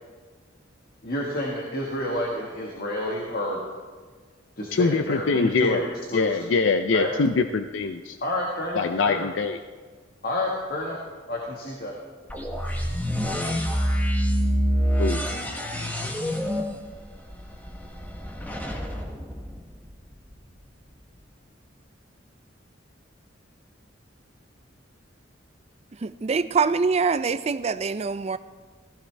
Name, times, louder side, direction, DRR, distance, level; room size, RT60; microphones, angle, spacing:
voice 1, 1.0-3.6 4.6-6.5 6.9-7.1 8.2-9.3 10.2-11.0 11.3-11.9, left 1 dB, 50° left, -2 dB, 1.7 m, -29 dB
voice 2, 4.7-5.8 6.1-8.2 8.7-9.6 15.0-15.2, left 4 dB, 85° left, 8 dB, 0.5 m, -23 dB
sound 1, 12.3-20.2, equal, 10° left, 1.1 m, -27 dB
voice 3, 26.0-28.4, right 5 dB, 35° right, 12 dB, 0.4 m, -24 dB
15.5 x 15.5 x 3.4 m, 1.4 s
head